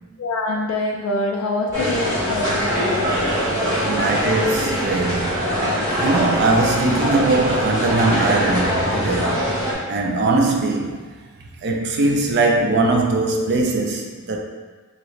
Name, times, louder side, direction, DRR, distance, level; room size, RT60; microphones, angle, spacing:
voice 1, 0.2-3.1, left 2 dB, 70° left, 0 dB, 0.3 m, -25 dB
sound 1, 1.7-9.7, equal, 15° right, 1.2 m, -22 dB
voice 2, 3.8-5.7 6.0-9.4 9.9-11.0 11.6-14.4, right 2 dB, 50° right, 2 dB, 0.4 m, -20 dB
2.8 x 2.6 x 3.1 m, 1.3 s
head